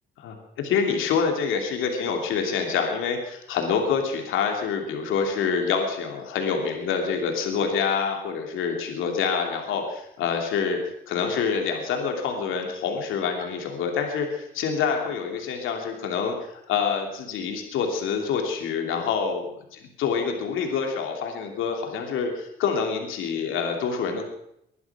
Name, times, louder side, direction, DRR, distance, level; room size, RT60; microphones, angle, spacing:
voice 1, 0.2-10.8 11.1-19.4 19.7-24.3, left 6 dB, 90° left, 3 dB, 2.9 m, -26 dB
21.0 x 11.5 x 6.0 m, 0.77 s
cardioid pair, 90°, 20 cm